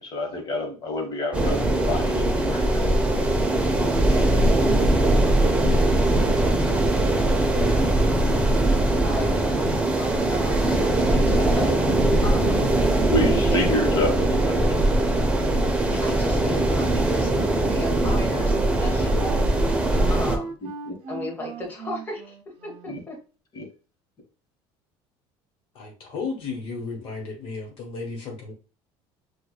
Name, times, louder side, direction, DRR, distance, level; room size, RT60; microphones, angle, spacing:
voice 1, 0.0-2.9 13.1-14.6 20.8-20.9 22.9-23.0 23.5-23.6, left 1 dB, 40° left, 3 dB, 1.1 m, -27 dB
sound 1, 1.3-7.2, left 2 dB, 75° left, 1.0 m, -35 dB
sound 2, 1.3-20.4, right 1 dB, 10° right, 0.6 m, -21 dB
voice 2, 9.0-9.7 9.9-11.8 12.2-12.7 15.9-19.5 20.1-20.6 21.1-22.3 22.6-23.2, left 1 dB, 15° left, -2 dB, 1.0 m, -34 dB
Wind instrument woodwind instrument, 17.2-23.1, right 4 dB, 55° right, 0.6 m, -38 dB
voice 3, 25.7-28.5, left 4 dB, 55° left, 1 dB, 1.1 m, -34 dB
4.6 x 2.4 x 2.3 m, 0.35 s
cardioid pair, 125°, 11 cm